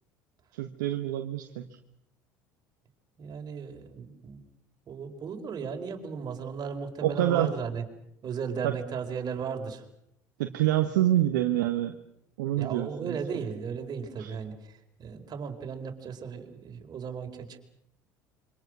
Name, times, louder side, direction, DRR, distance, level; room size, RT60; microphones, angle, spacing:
voice 1, 0.6-1.6 7.0-7.5 8.6-8.7 10.4-11.9 12.4-13.2 14.2-14.3, right 13 dB, 75° right, 5 dB, 1.4 m, -26 dB
voice 2, 3.2-4.4 4.9-7.8 8.2-9.8 12.6-17.6, right 6 dB, 40° right, 4 dB, 4.4 m, -36 dB
27.0 x 25.0 x 6.3 m, 0.77 s
hypercardioid pair, 70°, 10 cm